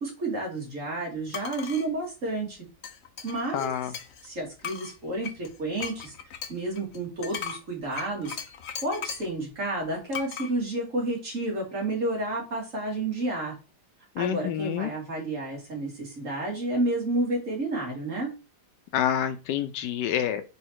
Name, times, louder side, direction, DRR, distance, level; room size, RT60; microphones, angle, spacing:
voice 1, 0.0-2.6 3.2-3.7 4.2-6.1 6.5-8.4 8.8-13.5 14.2-18.3, right 2 dB, 45° right, -1 dB, 2.5 m, -30 dB
sound 1, 1.3-1.9 2.8-4.3 4.6-9.3 10.1-10.5, left 7 dB, 55° left, 0.8 m, -38 dB
voice 2, 3.5-3.9 14.2-14.9 18.9-20.4, left 10 dB, 80° left, 9 dB, 1.2 m, -27 dB
4.8 x 4.3 x 4.6 m, 0.31 s
omnidirectional pair, 1.9 m